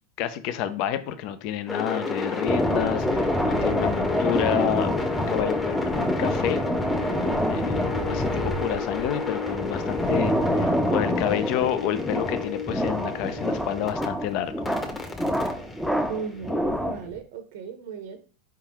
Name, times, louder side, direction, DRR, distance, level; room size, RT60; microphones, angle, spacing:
voice 1, 0.2-5.0 5.3-5.9 6.2-6.6 7.5-14.7, left 10 dB, 55° left, 11 dB, 0.5 m, -29 dB
sound 1, 1.7-14.1 14.7-16.8, left 4 dB, 20° left, 1.0 m, -31 dB
sound 2, 2.5-17.2, equal, ahead, 0.6 m, -27 dB
voice 2, 7.9-8.3 16.1-18.2, right 5 dB, 70° right, 6 dB, 0.7 m, -37 dB
4.6 x 3.6 x 2.9 m, 0.38 s
hypercardioid pair, 110°, 0 cm